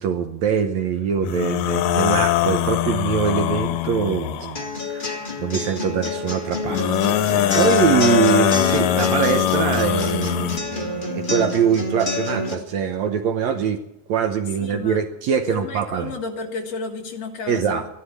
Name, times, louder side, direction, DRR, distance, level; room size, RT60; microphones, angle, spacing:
voice 1, 0.0-7.3 7.5-13.8 14.1-16.1 17.5-17.8, right 7 dB, 70° right, 7 dB, 1.9 m, -23 dB
sound 1, 1.2-4.6 6.6-10.6, left 11 dB, 90° left, 2.5 m, -22 dB
sound 2, 4.5-12.5, left 2 dB, 20° left, 1.6 m, -28 dB
voice 2, 7.3-8.1 14.6-15.0 15.5-17.9, left 4 dB, 55° left, 3 dB, 2.5 m, -32 dB
14.5 x 11.5 x 8.4 m, 0.82 s
omnidirectional pair, 3.8 m